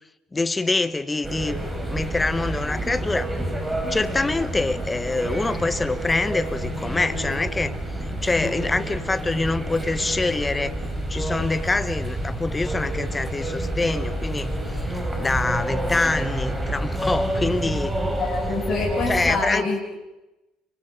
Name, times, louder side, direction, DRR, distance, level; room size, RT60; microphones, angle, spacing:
voice 1, 0.3-3.3 3.9-7.7 8.2-10.8 11.1-14.9 15.2-17.9 19.1-19.7, left 3 dB, 20° left, 12 dB, 1.5 m, -25 dB
sound 1, 1.2-19.4, right 1 dB, 10° right, 5.8 m, -28 dB
voice 2, 18.2-19.9, left 3 dB, 45° left, -1 dB, 7.5 m, -26 dB
30.0 x 25.0 x 5.2 m, 0.97 s
figure-of-eight pair, 55°, 0 cm